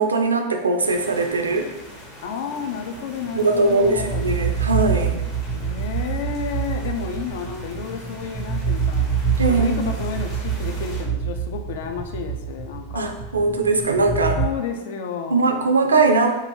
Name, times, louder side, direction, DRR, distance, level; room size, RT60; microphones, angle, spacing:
voice 1, 0.0-1.7 3.4-5.2 9.4-9.8 12.9-14.4 15.3-16.3, right 3 dB, 75° right, 5 dB, 0.3 m, -20 dB
sound 1, 0.8-11.0, equal, 30° left, 0.8 m, -42 dB
voice 2, 2.2-4.2 5.5-9.1 9.5-13.2 14.4-15.7, left 6 dB, 55° left, 5 dB, 0.3 m, -31 dB
sound 2, 3.4-14.5, right 6 dB, ahead, 0.5 m, -26 dB
2.6 x 2.3 x 2.9 m, 1.1 s
figure-of-eight pair, 90°, 0 cm